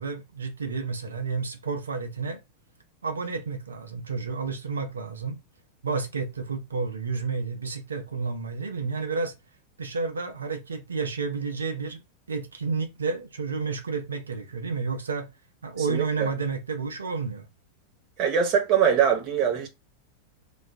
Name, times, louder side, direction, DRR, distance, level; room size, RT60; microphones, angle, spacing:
voice 1, 0.0-2.4 3.0-5.4 5.8-9.3 9.8-12.0 12.3-15.3 15.6-17.5, right 4 dB, 70° right, 0.6 m, -31 dB
voice 2, 15.8-16.3 18.2-19.7, right 8 dB, 35° right, 0.9 m, -23 dB
2.3 x 2.2 x 3.5 m
figure-of-eight pair, 90°, 0 cm